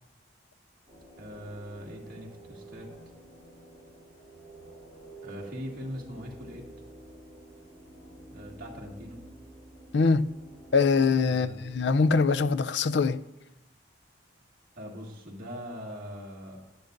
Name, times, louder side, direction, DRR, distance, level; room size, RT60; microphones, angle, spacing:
sound 1, 0.9-12.5, right 2 dB, 20° left, 3.1 m, -49 dB
voice 1, 1.2-2.9 5.2-6.7 8.3-9.2 11.3-11.7 14.8-16.6, equal, 45° right, 1.9 m, -41 dB
voice 2, 9.9-10.3 10.7-13.2, left 4 dB, 60° left, 0.4 m, -23 dB
16.0 x 10.5 x 2.6 m
head